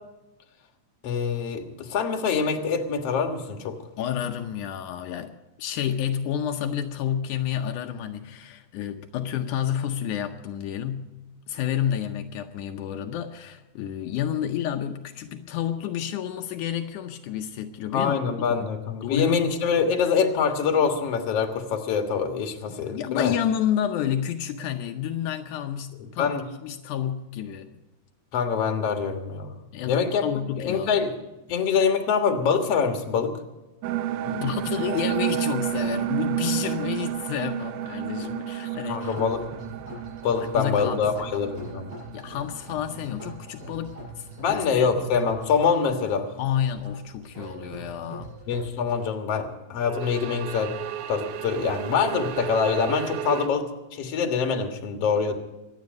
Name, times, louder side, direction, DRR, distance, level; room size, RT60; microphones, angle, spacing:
voice 1, 1.0-3.8 17.9-23.3 26.0-26.4 28.3-29.6 29.9-30.3 30.6-31.2 31.5-33.3 38.2-38.3 38.9-39.4 39.7-39.8 40.2-41.9 44.4-46.3 48.5-50.7 51.1-55.4, left 6 dB, 55° left, 5 dB, 2.5 m, -25 dB
voice 2, 4.0-11.1 11.5-18.2 18.5-18.7 19.0-19.5 22.9-27.7 29.7-30.9 34.3-39.2 40.5-41.0 42.1-45.1 46.4-48.4, left 10 dB, 85° left, 5 dB, 2.3 m, -30 dB
sound 1, 33.8-43.5 43.8-43.9 49.8-53.5, right 12 dB, 85° right, 2.4 m, -31 dB
sound 2, 39.0-49.1, right 1 dB, 40° right, 7.3 m, -42 dB
24.5 x 10.0 x 5.2 m, 1.0 s
omnidirectional pair, 3.5 m